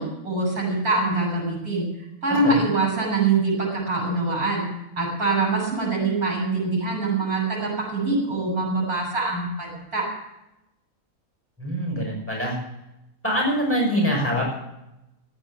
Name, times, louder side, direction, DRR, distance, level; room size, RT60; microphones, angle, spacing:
voice 1, 0.0-4.7 5.0-10.1, right 3 dB, 85° right, -3 dB, 8.5 m, -24 dB
voice 2, 2.3-2.6 11.6-12.6 13.2-14.5, equal, 10° left, -1 dB, 5.7 m, -24 dB
15.5 x 9.3 x 8.7 m, 0.90 s
omnidirectional pair, 1.5 m